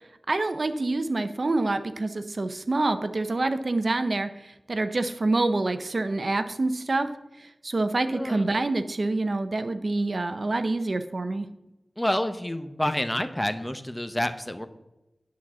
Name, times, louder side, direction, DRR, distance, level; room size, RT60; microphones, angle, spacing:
voice 1, 0.3-7.1 7.4-11.5, right 2 dB, 60° right, 10 dB, 0.7 m, -27 dB
voice 2, 8.1-8.5 12.0-14.7, left 1 dB, 10° left, 9 dB, 0.8 m, -28 dB
10.5 x 4.1 x 7.3 m, 0.96 s
wide cardioid pair, 50°, 0 cm